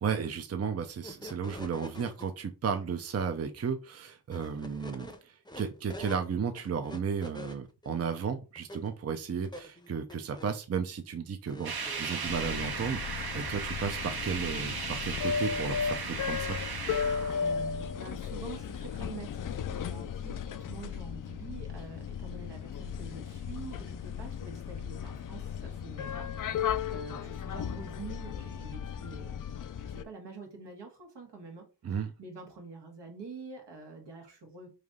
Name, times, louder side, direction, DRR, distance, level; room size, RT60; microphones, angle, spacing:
voice 1, 0.0-16.6 31.8-32.1, right 6 dB, 35° right, 7 dB, 0.6 m, -34 dB
sound 1, 1.0-2.3 4.3-6.2 6.6-8.0 8.6-8.9 9.4-10.6 11.5-12.2, equal, 10° left, 0.7 m, -46 dB
sound 2, 11.6-18.3, right 5 dB, 60° right, 1.0 m, -37 dB
sound 3, 12.2-30.0, left 7 dB, 50° left, 0.4 m, -36 dB
voice 2, 17.4-29.4 29.9-34.7, right 4 dB, 80° right, 2 dB, 1.4 m, -46 dB
3.3 x 2.6 x 3.7 m, 0.30 s
cardioid pair, 45°, 41 cm